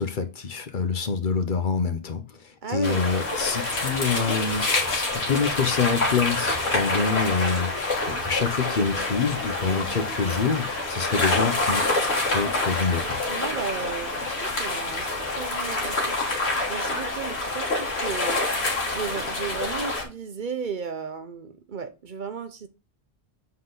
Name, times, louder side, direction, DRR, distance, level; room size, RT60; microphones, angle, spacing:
voice 1, 0.0-13.3, left 5 dB, 55° left, 0.9 m, -26 dB
voice 2, 2.6-3.1 9.6-9.9 13.3-22.7, right 5 dB, 55° right, 0.8 m, -35 dB
sound 1, 2.8-20.0, left 2 dB, 90° left, 1.9 m, -27 dB
7.4 x 3.9 x 3.9 m
omnidirectional pair, 1.1 m